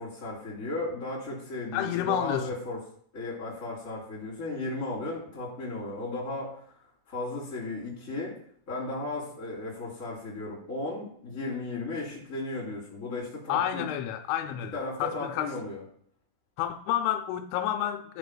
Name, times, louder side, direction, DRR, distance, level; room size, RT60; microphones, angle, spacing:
voice 1, 0.0-2.8 3.1-6.6 7.1-8.3 8.7-13.9 14.7-15.8, left 2 dB, 20° left, 2.9 m, -35 dB
voice 2, 1.7-2.5 13.5-15.5 16.6-18.2, left 11 dB, 85° left, 3.0 m, -30 dB
16.0 x 6.3 x 2.3 m
omnidirectional pair, 5.5 m